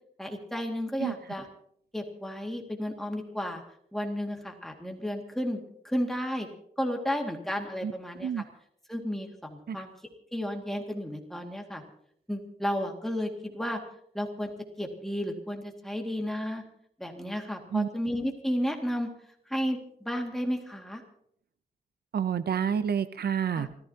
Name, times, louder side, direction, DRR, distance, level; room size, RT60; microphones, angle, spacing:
voice 1, 0.2-1.5 1.9-3.6 3.9-6.5 6.8-8.4 8.9-9.9 10.3-11.8 12.3-13.8 14.1-14.5 14.8-16.6 17.0-19.1 19.5-21.0 23.5-23.7, equal, ahead, 2 dB, 2.2 m, -32 dB
voice 2, 22.1-23.7, right 7 dB, 80° right, 13 dB, 0.7 m, -28 dB
28.5 x 14.5 x 2.9 m, 0.67 s
wide cardioid pair, 170°, 16 cm